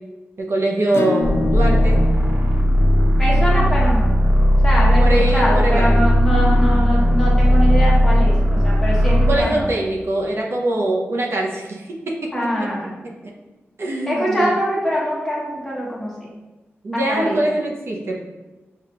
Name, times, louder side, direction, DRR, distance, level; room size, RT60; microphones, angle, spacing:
voice 1, 0.4-2.0 5.0-6.0 9.3-12.3 12.6-12.7 13.8-14.5 16.8-18.2, right 1 dB, 65° right, -1 dB, 0.7 m, -23 dB
Acoustic guitar / Strum, 0.9-6.2, left 4 dB, 65° left, 0.5 m, -31 dB
sound 1, 1.2-9.4, equal, 35° right, 0.7 m, -16 dB
voice 2, 3.2-4.1 4.6-9.7 12.3-12.9 14.1-16.1 16.9-17.4, equal, 10° left, -6 dB, 1.3 m, -23 dB
6.6 x 2.4 x 2.9 m, 1.1 s
wide cardioid pair, 125°, 5 cm